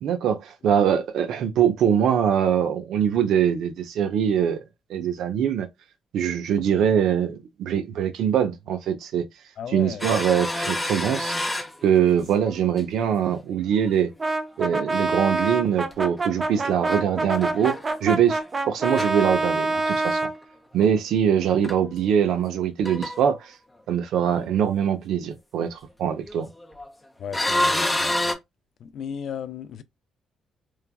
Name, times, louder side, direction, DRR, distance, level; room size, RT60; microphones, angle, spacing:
voice 1, 0.0-4.6 4.9-5.7 6.1-9.2 9.7-11.4 11.8-14.1 14.6-17.7 18.0-18.4 18.7-20.3 20.7-23.5 23.9-26.5, right 8 dB, 80° right, 0.6 m, -23 dB
voice 2, 9.6-10.1 27.2-28.4 28.8-29.8, left 8 dB, 65° left, 0.3 m, -35 dB
sound 1, 10.0-12.5 12.8-13.4 13.8-13.9 15.9-17.0 17.4-18.4 18.9-19.9 20.8-20.9 21.4-21.5 21.6-21.8 22.1-22.6 22.8-23.3 26.1-26.9 27.3-28.3, left 1 dB, 10° left, 0.5 m, -28 dB
Brass instrument, 14.2-20.4, right 2 dB, 35° right, 0.5 m, -26 dB
3.2 x 2.2 x 2.2 m
cardioid pair, 90°, 0 cm